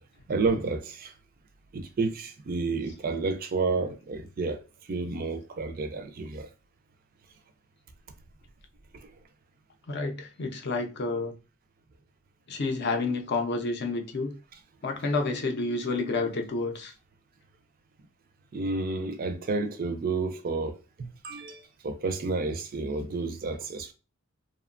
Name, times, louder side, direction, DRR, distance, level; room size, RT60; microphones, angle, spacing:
voice 1, 0.3-1.1 1.7-6.5 8.9-9.1 18.5-23.9, right 3 dB, 40° right, 0.3 m, -31 dB
voice 2, 9.9-11.3 12.5-14.3 14.8-16.9, left 3 dB, 50° left, 0.5 m, -29 dB
2.9 x 2.1 x 2.3 m
head